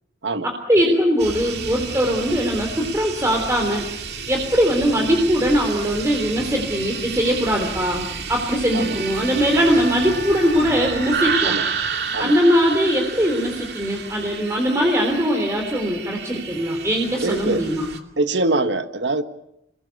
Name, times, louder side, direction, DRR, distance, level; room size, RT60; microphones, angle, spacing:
voice 1, 0.4-3.9 4.3-11.6 12.2-17.9, equal, 15° right, 3.4 m, -21 dB
sound 1, 1.2-18.0, right 5 dB, 65° right, 2.6 m, -30 dB
Bowed string instrument, 8.6-12.4, right 4 dB, 45° right, 4.3 m, -36 dB
voice 2, 17.2-17.6 18.2-19.2, right 2 dB, 80° right, 1.5 m, -23 dB
28.5 x 21.0 x 8.3 m
head